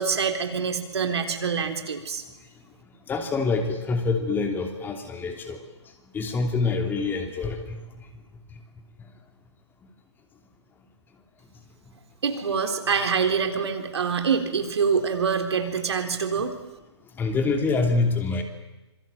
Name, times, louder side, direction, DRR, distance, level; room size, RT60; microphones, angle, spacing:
voice 1, 0.0-2.2 12.2-16.5, right 6 dB, 65° right, 6 dB, 3.9 m, -25 dB
voice 2, 3.1-5.6 6.1-7.8 17.2-18.4, left 4 dB, 15° left, 5 dB, 2.8 m, -25 dB
26.0 x 23.0 x 9.0 m, 1.1 s
figure-of-eight pair, 130°, 15 cm